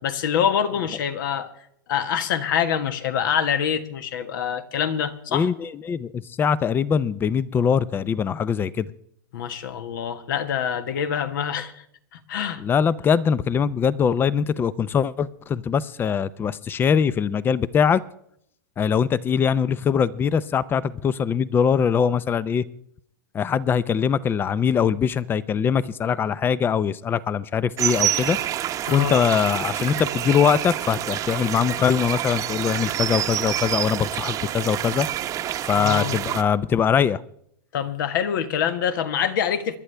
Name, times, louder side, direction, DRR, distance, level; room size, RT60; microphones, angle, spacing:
voice 1, 0.0-1.5 1.9-5.5 9.3-11.8 12.1-12.6 28.9-29.2 35.7-36.2 37.7-39.8, left 8 dB, 65° left, 1.5 m, -25 dB
voice 2, 5.3-8.9 12.6-18.0 18.8-22.6 23.3-28.4 28.9-35.1 35.6-37.2, left 7 dB, 20° left, 0.5 m, -22 dB
sound 1, 27.8-36.4, right 11 dB, 30° right, 0.9 m, -27 dB
26.5 x 11.5 x 3.4 m
hypercardioid pair, 135°, 11 cm